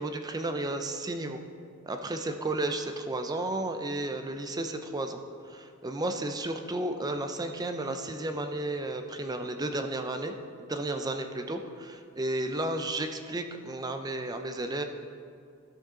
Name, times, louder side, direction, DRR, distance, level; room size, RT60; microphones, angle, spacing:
voice 1, 0.0-1.4 1.8-5.2 5.5-10.3 10.7-14.8, right 2 dB, 15° right, 6 dB, 0.5 m, -33 dB
13.0 x 6.3 x 3.8 m, 2.3 s
head